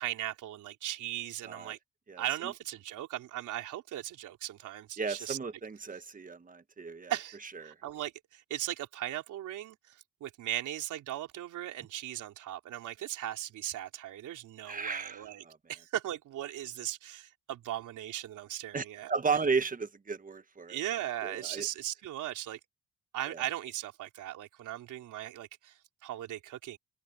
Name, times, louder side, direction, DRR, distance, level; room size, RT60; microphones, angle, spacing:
voice 1, 0.0-1.8 2.2-5.4 5.9-6.0 7.1-19.1 20.7-22.6 23.1-26.8, right 13 dB, 80° right, 3.5 m, -38 dB
voice 2, 5.0-7.1 7.6-7.7 14.7-15.2 18.7-18.8 19.1-20.8 21.2-21.7, right 5 dB, 25° right, 1.4 m, -33 dB
cardioid pair, 90°, 30 cm